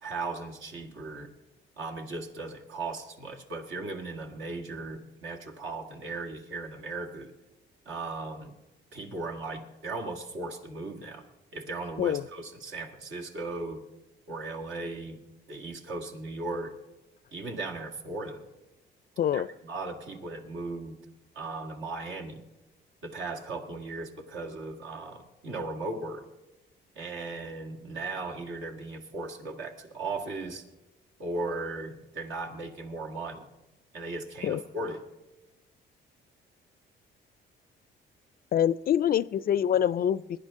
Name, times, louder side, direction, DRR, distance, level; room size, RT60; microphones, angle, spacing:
voice 1, 0.0-1.3 1.8-7.3 7.9-8.5 8.9-11.3 11.5-13.8 14.3-15.2 15.5-16.7 17.3-18.4 19.3-21.0 21.4-22.4 23.0-26.2 27.0-30.6 31.2-33.5 33.9-35.0, right 3 dB, 75° right, 2 dB, 1.9 m, -37 dB
voice 2, 38.5-40.4, left 10 dB, 50° left, 18 dB, 0.4 m, -25 dB
22.0 x 10.0 x 3.6 m, 1.0 s
cardioid pair, 90°, 20 cm